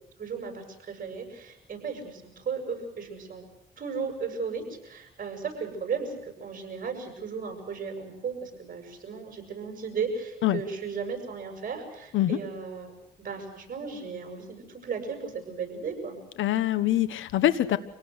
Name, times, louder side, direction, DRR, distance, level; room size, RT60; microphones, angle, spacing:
voice 1, 0.2-3.4 3.8-16.2, right 5 dB, 45° right, 5 dB, 7.6 m, -35 dB
voice 2, 16.4-17.8, left 13 dB, 80° left, 14 dB, 1.3 m, -24 dB
26.0 x 18.0 x 8.2 m, 0.83 s
cardioid pair, 90°, 20 cm